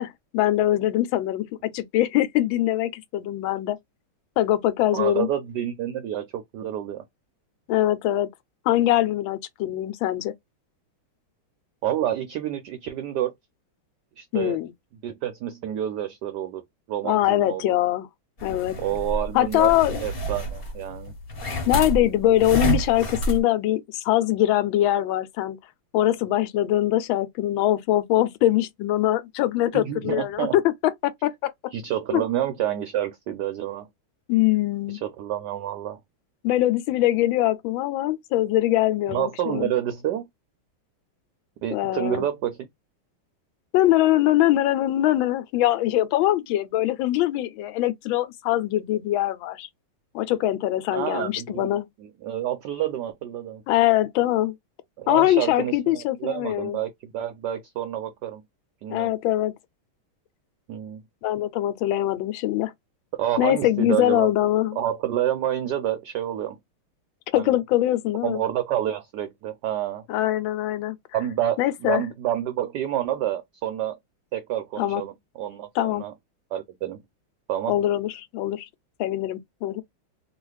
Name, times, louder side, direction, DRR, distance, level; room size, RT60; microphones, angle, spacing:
voice 1, 0.0-3.8 4.4-5.3 7.7-8.3 8.7-10.3 14.3-14.7 17.0-18.1 18.4-18.7 19.3-20.0 21.7-25.6 25.9-31.5 32.1-32.2 34.3-35.0 36.4-39.7 41.7-42.3 43.7-49.7 50.1-51.9 53.7-54.5 55.1-56.8 58.9-59.5 61.2-62.7 63.4-64.8 67.3-68.4 70.1-71.0 71.6-72.0 74.8-75.0 75.7-76.0 77.7-78.7 79.0-79.8, left 14 dB, 80° left, 1.3 m, -23 dB
voice 2, 4.9-7.0 11.8-13.3 14.2-14.6 15.0-16.6 16.9-17.8 18.8-19.8 20.0-21.1 29.7-30.6 31.7-33.9 35.0-36.0 39.1-40.2 41.6-42.7 50.9-51.5 52.2-53.6 55.0-58.4 58.8-59.1 60.7-61.0 63.2-64.3 64.8-66.6 67.3-67.5 68.2-70.0 71.1-73.9 74.3-76.1 76.5-77.0 77.5-77.7, right 11 dB, 75° right, 1.0 m, -28 dB
sound 1, 18.4-23.4, right 1 dB, 35° left, 1.1 m, -29 dB
3.1 x 2.3 x 3.1 m
omnidirectional pair, 2.2 m